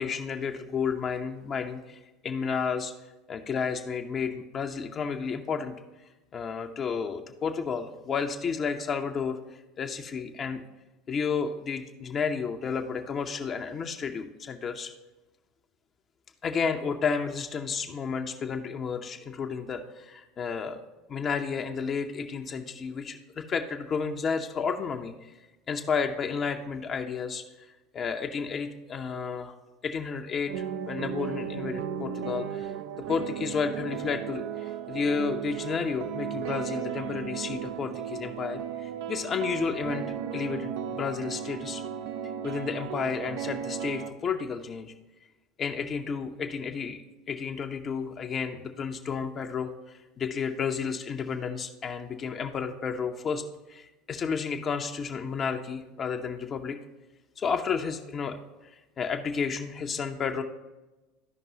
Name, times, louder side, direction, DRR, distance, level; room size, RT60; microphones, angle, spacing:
voice 1, 0.0-2.9 3.3-5.7 6.3-10.6 11.1-14.9 16.4-20.8 21.1-27.4 27.9-29.5 29.8-32.7 33.1-41.8 42.4-44.9 45.6-56.8 57.4-58.4 58.6-60.4, left 6 dB, 35° left, 4 dB, 0.6 m, -32 dB
sound 1, 30.5-44.1, right 9 dB, 60° right, 0.4 m, -35 dB
13.0 x 5.3 x 2.8 m, 1.1 s
figure-of-eight pair, 75°, 0 cm